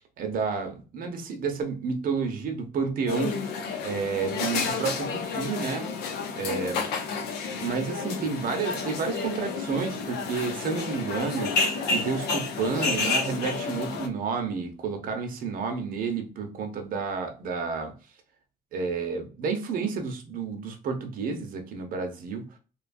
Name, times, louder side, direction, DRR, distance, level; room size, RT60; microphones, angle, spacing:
voice 1, 0.2-3.5 3.8-5.9 6.4-6.8 7.6-11.5 11.9-17.9 18.7-22.4, right 5 dB, 55° right, 5 dB, 0.7 m, -30 dB
sound 1, 3.1-14.1, left 4 dB, 85° left, 0.5 m, -30 dB
2.8 x 2.3 x 2.5 m, 0.34 s
cardioid pair, 110°, 17 cm